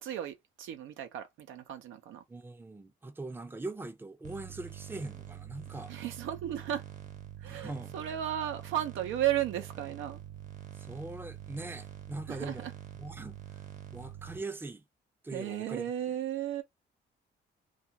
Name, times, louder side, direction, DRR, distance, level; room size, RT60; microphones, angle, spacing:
voice 1, 0.0-2.2 5.9-6.8 7.4-10.2 12.3-12.7 15.3-16.6, right 11 dB, 85° right, 0.7 m, -34 dB
voice 2, 2.3-5.9 7.5-7.9 10.8-12.7 13.0-13.4 13.9-14.8 15.2-15.9, right 2 dB, 10° right, 0.5 m, -41 dB
sound 1, 4.2-14.4, right 10 dB, 40° right, 0.9 m, -46 dB
2.4 x 2.4 x 2.8 m
cardioid pair, 90°, 20 cm